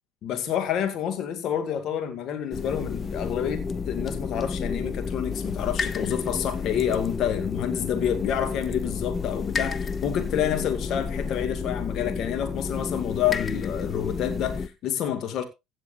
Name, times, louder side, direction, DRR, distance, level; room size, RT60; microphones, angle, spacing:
voice 1, 0.2-15.4, left 9 dB, 55° left, 2.0 m, -28 dB
sound 1, 2.5-14.7, left 5 dB, 30° left, 0.9 m, -31 dB
16.0 x 9.1 x 2.5 m
hypercardioid pair, 65°, 0 cm